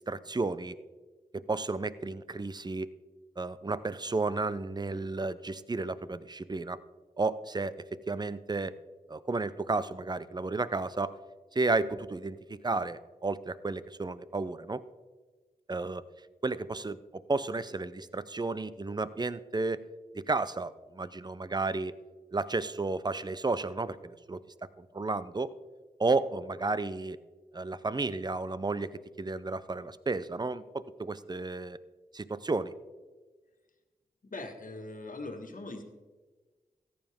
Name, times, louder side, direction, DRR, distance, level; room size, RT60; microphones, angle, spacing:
voice 1, 0.1-0.7 1.3-2.9 3.4-6.8 7.2-8.7 9.1-11.1 11.5-14.8 15.7-16.0 16.4-17.0 17.3-19.8 20.1-21.9 22.3-24.4 24.8-25.5 26.0-27.2 27.5-31.8 32.1-32.7, right 3 dB, 25° right, 16 dB, 0.6 m, -32 dB
voice 2, 34.3-35.8, left 2 dB, 55° left, 4 dB, 1.8 m, -41 dB
14.0 x 9.5 x 3.6 m, 1.3 s
cardioid pair, 40°, 16 cm